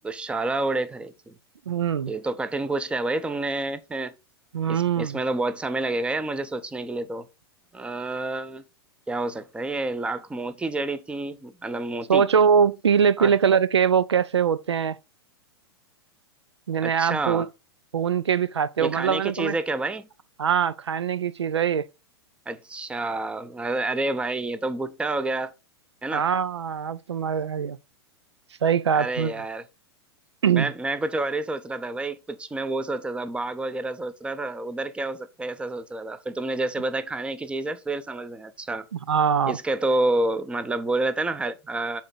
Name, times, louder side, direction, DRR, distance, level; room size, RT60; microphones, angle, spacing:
voice 1, 0.0-1.3 2.1-4.1 4.7-7.3 7.7-8.6 9.1-12.2 13.2-13.3 16.8-17.5 18.8-20.1 22.5-25.5 26.0-26.3 28.9-29.6 30.5-38.9 39.5-42.0, right 2 dB, 10° right, 0.6 m, -29 dB
voice 2, 1.7-2.1 4.5-5.2 12.1-15.0 16.7-17.5 17.9-19.6 20.4-21.9 26.1-27.8 28.6-29.3 30.4-30.7 38.9-39.6, right 7 dB, 85° right, 0.4 m, -22 dB
7.6 x 3.6 x 3.8 m
figure-of-eight pair, 100°, 14 cm